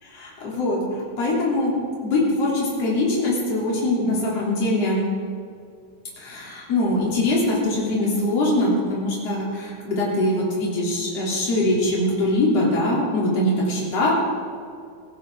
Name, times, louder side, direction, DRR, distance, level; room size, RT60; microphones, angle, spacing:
voice 1, 0.0-0.8 1.2-1.7 2.0-5.1 6.2-14.1, left 1 dB, 40° left, -5 dB, 4.1 m, -22 dB
18.0 x 15.5 x 3.8 m, 2.3 s
omnidirectional pair, 4.5 m